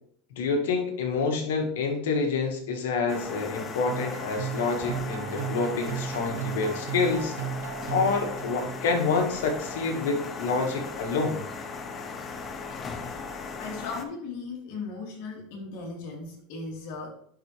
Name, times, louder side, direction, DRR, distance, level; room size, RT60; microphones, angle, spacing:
voice 1, 0.3-7.4 7.9-11.4, left 4 dB, 85° left, 1.6 m, -27 dB
sound 1, 3.1-14.0, left 4 dB, 30° left, 0.9 m, -37 dB
sound 2, 3.9-9.1, right 8 dB, 85° right, 0.8 m, -35 dB
voice 2, 13.6-17.1, left 4 dB, 65° left, 2.4 m, -37 dB
10.5 x 4.2 x 3.3 m
supercardioid pair, 125°, 0 cm